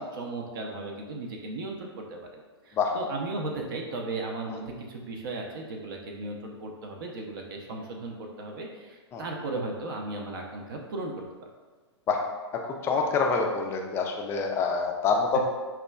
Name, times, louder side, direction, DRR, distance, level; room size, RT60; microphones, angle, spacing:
voice 1, 0.0-11.1 11.4-11.5, right 2 dB, 50° right, 1 dB, 0.5 m, -36 dB
voice 2, 12.6-15.4, left 4 dB, 15° left, 2 dB, 0.4 m, -26 dB
5.6 x 2.3 x 2.2 m, 1.3 s
figure-of-eight pair, 110°, 15 cm